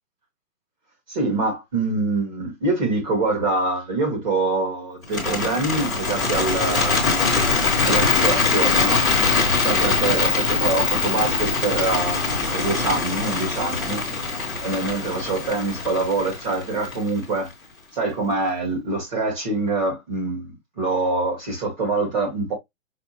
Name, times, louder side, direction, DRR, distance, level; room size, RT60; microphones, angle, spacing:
voice 1, 1.1-7.3 7.8-9.1 9.6-14.0 14.6-17.5 17.9-22.5, right 3 dB, 35° right, 1.6 m, -25 dB
Bird, 5.0-17.2, left 4 dB, ahead, 1.0 m, -22 dB
5.9 x 2.2 x 2.8 m
hypercardioid pair, 165°, 40 cm